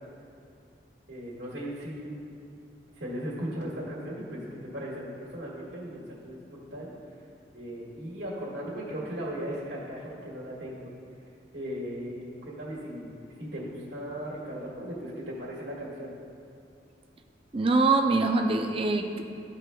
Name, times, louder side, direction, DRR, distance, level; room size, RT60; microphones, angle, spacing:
voice 1, 1.1-2.2 3.0-6.9 7.5-10.9 11.5-13.1 13.4-16.1, equal, 85° right, -6 dB, 1.6 m, -37 dB
voice 2, 17.5-19.2, right 3 dB, 30° right, 4 dB, 0.4 m, -24 dB
13.0 x 4.9 x 2.3 m, 2.5 s
head